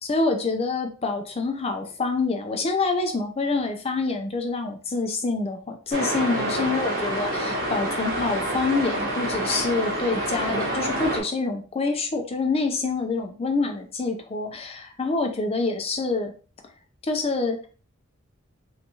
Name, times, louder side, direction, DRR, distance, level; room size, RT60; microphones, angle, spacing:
voice 1, 0.0-16.3 17.0-17.7, left 3 dB, 30° left, 5 dB, 0.4 m, -26 dB
sound 1, 5.9-11.2, right 1 dB, 50° right, 1.2 m, -27 dB
3.4 x 2.7 x 2.8 m, 0.38 s
head